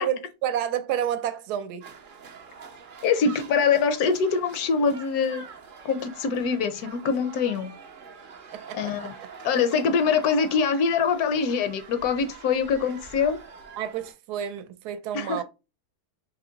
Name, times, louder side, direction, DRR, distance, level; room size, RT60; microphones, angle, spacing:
voice 1, 0.0-1.9 8.5-9.3 13.8-15.4, right 9 dB, 80° right, 1.1 m, -30 dB
sound 1, 1.8-14.1, right 5 dB, 55° right, 0.5 m, -45 dB
voice 2, 3.0-5.4 5.8-7.7 8.7-9.1 9.4-13.4 15.1-15.4, left 5 dB, 70° left, 1.0 m, -24 dB
3.6 x 2.9 x 3.8 m
omnidirectional pair, 1.7 m